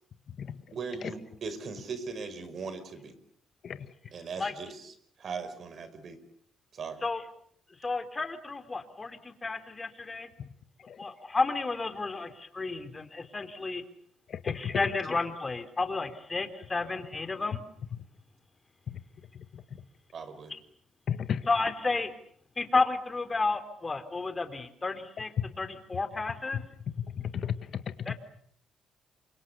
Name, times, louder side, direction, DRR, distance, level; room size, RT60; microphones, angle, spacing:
voice 1, 0.7-3.2 4.1-6.2 6.7-7.0 20.1-20.5, right 5 dB, 55° right, 11 dB, 5.3 m, -39 dB
voice 2, 7.8-10.3 11.0-13.8 14.4-17.6 21.5-22.1 22.6-26.6 28.1-28.2, left 3 dB, 25° left, 9 dB, 3.6 m, -32 dB
voice 3, 14.3-14.8 18.9-19.0 21.1-21.5 25.4-25.5 27.1-28.1, left 8 dB, 55° left, 11 dB, 1.7 m, -33 dB
29.5 x 25.0 x 7.0 m, 0.63 s
cardioid pair, 90°, 0 cm